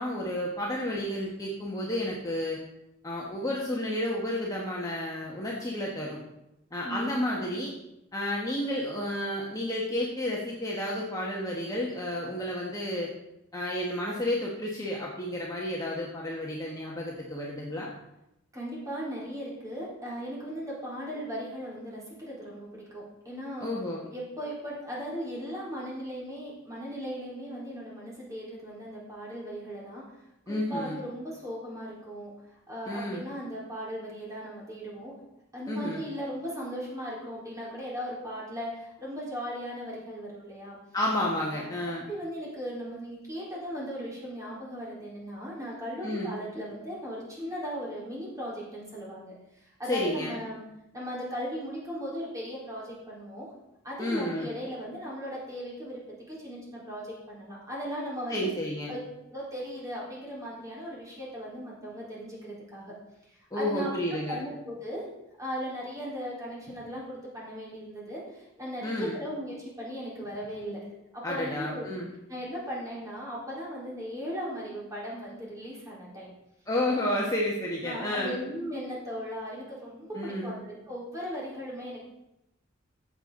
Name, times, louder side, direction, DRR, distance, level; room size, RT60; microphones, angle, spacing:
voice 1, 0.0-2.6 3.0-6.2 6.7-7.7 8.1-13.1 13.5-17.9 23.6-24.1 30.5-31.0 32.9-33.2 35.7-36.0 40.9-42.0 46.0-46.4 49.9-50.4 54.0-54.5 58.3-58.9 63.5-64.4 68.8-69.2 71.2-72.1 76.7-78.4 80.1-80.5, left 1 dB, 20° left, -4 dB, 1.5 m, -31 dB
voice 2, 6.8-7.2 18.5-23.7 24.1-30.0 30.5-32.3 32.7-35.1 35.5-40.8 41.5-41.7 42.1-49.3 49.8-50.6 50.9-53.5 53.8-58.5 58.9-59.0 59.3-62.9 63.3-65.0 65.4-70.8 71.1-71.9 72.3-76.3 77.1-77.2 77.8-82.0, equal, 15° right, -6 dB, 4.0 m, -37 dB
14.0 x 8.0 x 3.9 m, 0.87 s
head